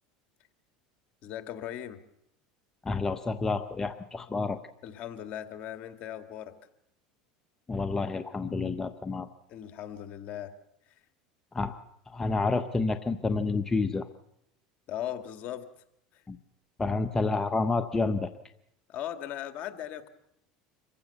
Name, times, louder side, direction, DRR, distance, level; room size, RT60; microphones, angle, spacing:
voice 1, 1.2-2.0 4.8-6.5 9.5-10.5 14.9-15.7 16.1-16.2 18.9-20.1, left 11 dB, 50° left, 9 dB, 1.9 m, -38 dB
voice 2, 2.8-4.6 7.7-9.3 11.5-11.8 12.1-14.1 16.3-16.4 16.8-18.3, left 3 dB, 15° left, 9 dB, 0.9 m, -29 dB
26.0 x 15.5 x 6.9 m, 0.76 s
supercardioid pair, 105°, 3 cm